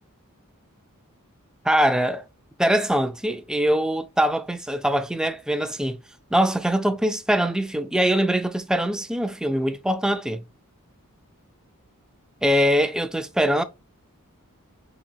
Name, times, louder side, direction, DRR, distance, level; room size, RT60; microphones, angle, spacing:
voice 1, 1.7-2.2 2.6-6.0 6.3-10.4 12.4-13.6, equal, 5° right, 0.3 m, -22 dB
4.0 x 2.7 x 2.7 m
head